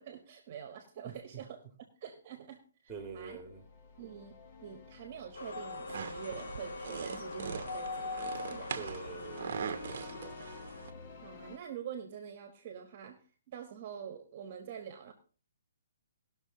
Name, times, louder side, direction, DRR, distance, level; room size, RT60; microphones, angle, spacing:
voice 1, 0.0-1.6 2.0-2.6 3.1-3.4 4.0-8.7 11.2-15.1, right 8 dB, 30° right, 5 dB, 1.2 m, -46 dB
voice 2, 1.0-1.4 2.9-3.6 8.7-10.4, right 5 dB, 5° right, 1 dB, 1.8 m, -46 dB
Orchestra Music, 2.9-11.6, left 4 dB, 30° left, 0.9 m, -51 dB
sound 1, 5.3-10.9, left 3 dB, 65° left, 1.4 m, -42 dB
sound 2, 5.9-10.9, right 7 dB, 45° right, 0.9 m, -42 dB
18.5 x 6.3 x 3.7 m, 0.37 s
hypercardioid pair, 170°, 0 cm